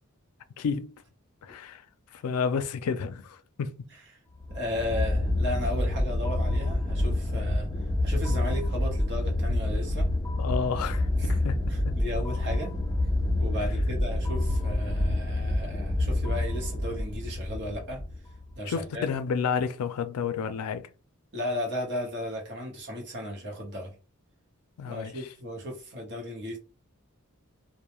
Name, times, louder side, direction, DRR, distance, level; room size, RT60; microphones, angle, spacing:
voice 1, 0.6-0.9 1.4-1.9 2.1-3.9 10.4-11.9 18.7-20.9 24.8-25.3, left 6 dB, 85° left, 0.4 m, -31 dB
sound 1, 4.4-18.5, left 1 dB, 15° left, 0.4 m, -28 dB
voice 2, 4.5-7.7 8.0-10.1 11.2-11.3 11.9-12.8 13.4-18.0 18.5-19.1 21.3-23.9 24.8-26.6, left 1 dB, 55° right, 0.9 m, -35 dB
2.2 x 2.1 x 2.9 m
head